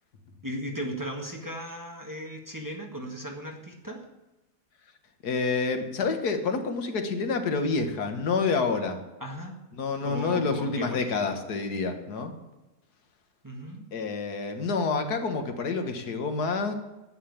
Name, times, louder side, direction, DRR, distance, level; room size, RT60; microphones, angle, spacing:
voice 1, 0.4-4.0 9.2-9.5 10.0-11.4 13.4-13.8, equal, 15° right, 1 dB, 1.5 m, -36 dB
voice 2, 5.2-9.0 9.8-12.3 13.9-16.7, left 4 dB, 90° left, 6 dB, 1.8 m, -28 dB
10.0 x 7.5 x 8.5 m, 1.0 s
omnidirectional pair, 1.6 m